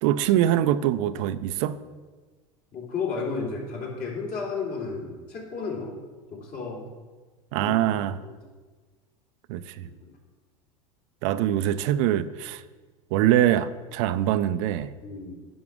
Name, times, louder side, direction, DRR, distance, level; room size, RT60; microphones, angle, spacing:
voice 1, 0.0-1.8 7.5-8.2 9.5-9.9 11.2-12.6 13.1-14.9, right 12 dB, 65° right, 0.4 m, -23 dB
voice 2, 2.7-5.9 6.3-6.8 7.6-8.3 9.8-10.1 15.0-15.4, left 4 dB, 50° left, 2.9 m, -33 dB
10.5 x 5.9 x 3.6 m
hypercardioid pair, 100°, 17 cm